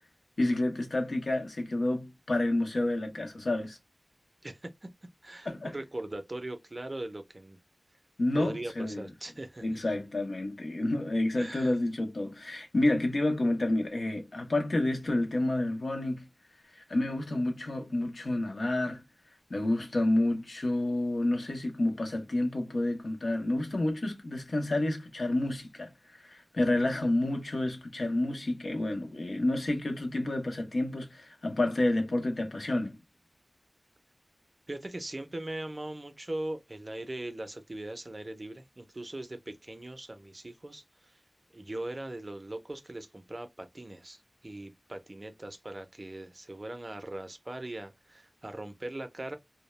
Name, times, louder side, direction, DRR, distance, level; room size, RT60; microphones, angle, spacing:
voice 1, 0.4-3.8 5.5-5.8 8.2-9.1 9.6-16.3 16.7-19.0 19.5-33.0, left 1 dB, 70° left, 0.7 m, -29 dB
voice 2, 5.2-7.6 8.4-9.8 11.4-11.7 34.7-41.2 41.5-49.4, right 1 dB, 35° right, 0.4 m, -40 dB
2.2 x 2.0 x 3.0 m
wide cardioid pair, 75°, 0 cm